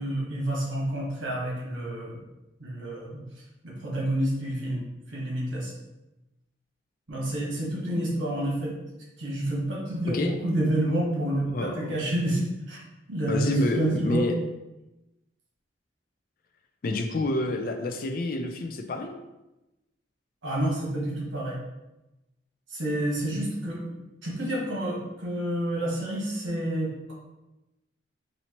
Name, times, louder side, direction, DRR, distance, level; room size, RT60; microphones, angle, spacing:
voice 1, 0.0-2.2 2.6-3.2 3.6-5.7 7.1-8.7 9.2-12.8 13.1-14.3 20.4-21.6 22.7-23.9 24.2-27.1, right 1 dB, 80° right, -3 dB, 1.2 m, -29 dB
voice 2, 11.5-11.9 13.3-14.3 16.8-19.1, left 2 dB, 45° left, 5 dB, 0.3 m, -28 dB
4.3 x 2.7 x 2.9 m, 0.98 s
head